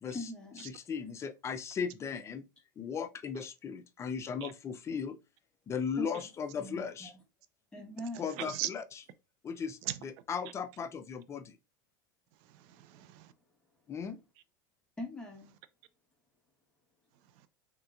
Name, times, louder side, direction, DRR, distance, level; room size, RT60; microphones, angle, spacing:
voice 1, 0.1-0.7 6.0-6.3 6.5-7.1 7.7-8.3 15.0-15.5, left 1 dB, 5° left, 1.1 m, -42 dB
voice 2, 0.7-2.4 2.8-5.2 5.7-7.1 8.2-8.8 9.4-11.6 13.9-14.2, left 6 dB, 25° left, 0.4 m, -37 dB
voice 3, 8.3-8.7 9.8-10.0 12.4-13.3 17.2-17.5, right 14 dB, 60° right, 0.4 m, -39 dB
3.3 x 2.9 x 2.3 m
hypercardioid pair, 105°, 11 cm